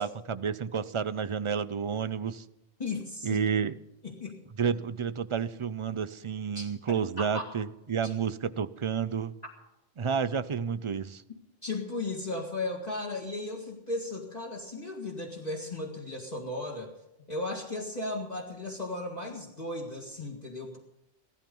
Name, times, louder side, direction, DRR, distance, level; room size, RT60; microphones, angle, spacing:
voice 1, 0.0-2.4 3.2-3.7 4.6-9.3 10.0-11.2, right 6 dB, 50° right, 14 dB, 0.4 m, -30 dB
voice 2, 2.8-3.4 4.0-4.4 6.5-7.5 8.0-8.1 11.6-16.9 17.3-20.8, left 2 dB, 35° left, -3 dB, 2.1 m, -36 dB
16.0 x 13.5 x 5.4 m, 0.92 s
omnidirectional pair, 1.2 m